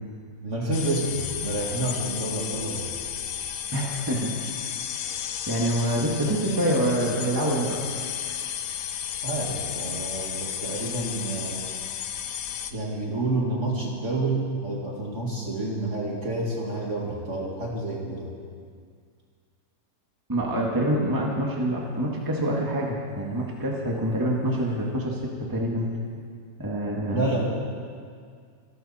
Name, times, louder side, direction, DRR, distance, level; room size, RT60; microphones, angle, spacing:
voice 1, 0.4-3.0 9.2-11.7 12.7-18.3 27.1-27.4, right 2 dB, 40° right, -2 dB, 2.4 m, -29 dB
sound 1, 0.7-12.7, left 9 dB, 65° left, 1.3 m, -33 dB
voice 2, 3.7-4.3 4.9-7.8 20.3-25.9 26.6-27.2, right 1 dB, 10° right, -2 dB, 1.9 m, -26 dB
26.0 x 12.5 x 4.4 m, 2.1 s
omnidirectional pair, 2.1 m